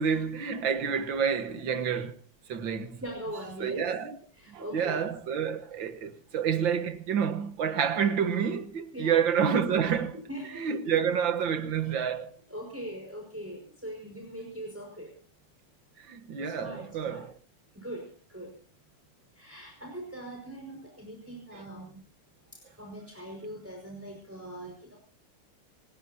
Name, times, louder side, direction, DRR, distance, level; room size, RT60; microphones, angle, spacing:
voice 1, 0.0-2.2 2.5-3.0 3.6-4.2 4.5-10.2 10.6-12.3 16.0-17.3, right 7 dB, 90° right, 2.1 m, -28 dB
voice 2, 2.7-3.9 4.3-5.0 8.9-9.2 10.3-10.7 12.5-15.1 16.4-17.3 17.7-18.6 19.3-22.0 22.5-25.0, right 1 dB, 5° right, 5.3 m, -41 dB
26.5 x 15.5 x 2.8 m
omnidirectional pair, 2.0 m